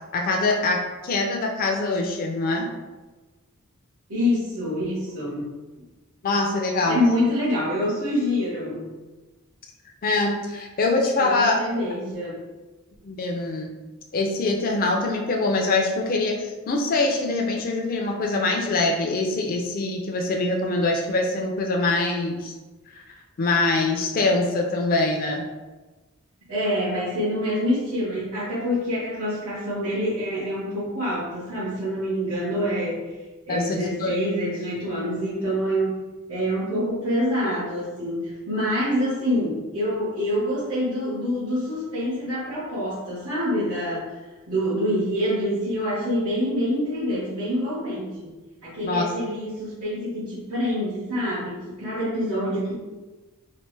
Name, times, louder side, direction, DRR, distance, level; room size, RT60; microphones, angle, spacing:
voice 1, 0.1-2.7 6.2-7.0 10.0-11.6 13.0-13.7 14.1-22.5 23.4-25.4 33.5-34.2 48.8-49.1, left 2 dB, 40° left, 1 dB, 0.4 m, -24 dB
voice 2, 4.1-5.5 6.9-8.9 11.2-12.4 26.5-33.0 33.5-36.0 36.3-44.1 44.5-48.3 48.6-52.7, equal, 80° right, -11 dB, 1.3 m, -26 dB
3.2 x 2.5 x 3.2 m, 1.2 s
head